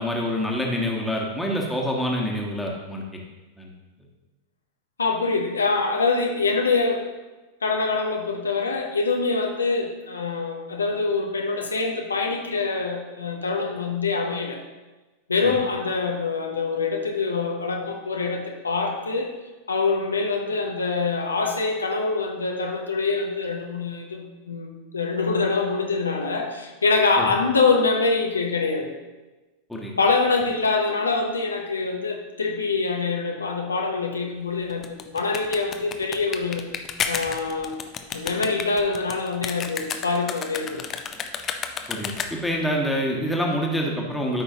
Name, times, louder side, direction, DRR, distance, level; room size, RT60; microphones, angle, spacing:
voice 1, 0.0-3.0 3.6-3.7 15.4-15.6 27.2-27.3 29.7-29.9 41.9-44.4, equal, 5° left, -2 dB, 1.5 m, -26 dB
voice 2, 5.0-7.0 7.6-14.6 15.3-19.3 19.7-24.2 24.5-29.0 30.0-36.7 37.1-37.8 38.1-40.8, left 4 dB, 75° left, 2 dB, 0.8 m, -25 dB
sound 1, 34.7-42.6, left 7 dB, 25° left, 0.6 m, -32 dB
12.5 x 5.5 x 2.8 m, 1.2 s
figure-of-eight pair, 90°, 0 cm